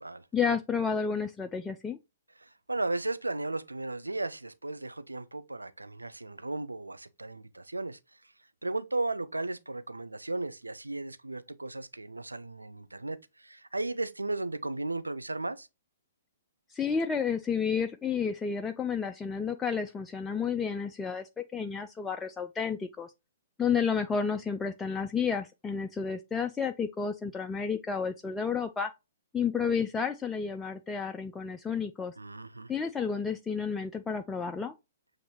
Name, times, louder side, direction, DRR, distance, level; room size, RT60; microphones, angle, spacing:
voice 1, 0.3-2.0 16.7-23.1 23.6-28.9 29.3-32.1 32.7-34.7, left 6 dB, 10° left, 0.3 m, -31 dB
voice 2, 2.4-8.0 8.6-15.7 32.2-32.7, right 2 dB, 80° right, 0.4 m, -35 dB
6.9 x 2.6 x 2.9 m
figure-of-eight pair, 120°, 0 cm